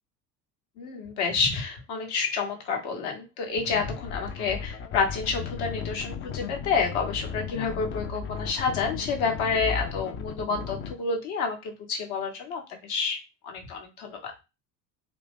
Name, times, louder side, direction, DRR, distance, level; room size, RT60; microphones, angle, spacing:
voice 1, 0.8-13.2 13.4-14.3, left 5 dB, 50° left, 3 dB, 1.1 m, -29 dB
sound 1, 3.6-10.9, left 6 dB, 25° left, 0.4 m, -35 dB
2.8 x 2.5 x 3.5 m, 0.26 s
figure-of-eight pair, 65°, 50 cm